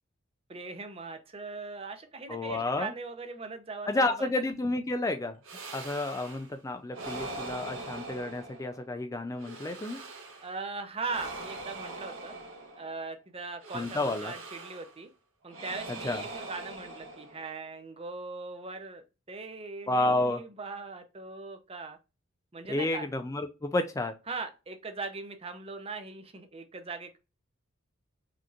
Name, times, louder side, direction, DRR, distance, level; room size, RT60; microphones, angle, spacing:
voice 1, 0.5-4.3 10.4-12.3 12.8-15.1 15.4-22.0 22.5-23.1 24.3-27.2, right 3 dB, 30° right, 7 dB, 0.6 m, -40 dB
voice 2, 2.3-2.9 3.9-5.4 5.7-10.0 13.7-14.3 16.0-16.2 19.9-20.4 22.7-24.1, left 2 dB, 15° left, 8 dB, 0.3 m, -30 dB
sound 1, 5.4-6.5 6.9-8.9 9.4-10.6 11.0-13.0 13.6-15.0 15.5-17.6, right 2 dB, 85° right, 1.0 m, -42 dB
5.0 x 2.9 x 2.4 m, 0.28 s
head